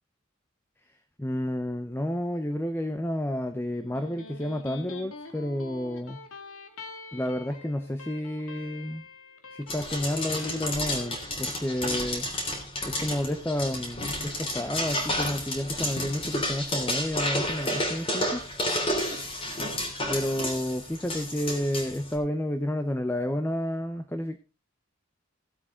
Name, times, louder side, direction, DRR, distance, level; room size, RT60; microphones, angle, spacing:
voice 1, 1.2-6.2 7.1-9.0 9.5-12.3 12.8-18.5 20.1-24.4, left 1 dB, 10° left, 8 dB, 0.7 m, -30 dB
Electric guitar, 3.7-11.1, left 3 dB, 90° left, 2.0 m, -44 dB
sound 1, 9.7-22.1, left 1 dB, 25° left, 3.2 m, -31 dB
16.5 x 8.1 x 3.7 m, 0.28 s
head